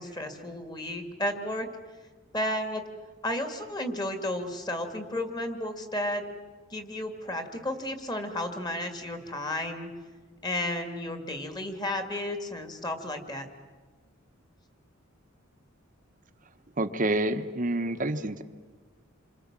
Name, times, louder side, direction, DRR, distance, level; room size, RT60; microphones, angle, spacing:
voice 1, 0.0-1.7 2.3-2.8 3.2-6.3 6.7-9.9 10.4-13.5, left 1 dB, 20° left, 6 dB, 2.2 m, -33 dB
voice 2, 16.8-18.4, right 1 dB, 40° right, 7 dB, 1.0 m, -28 dB
28.0 x 25.5 x 7.4 m, 1.4 s
head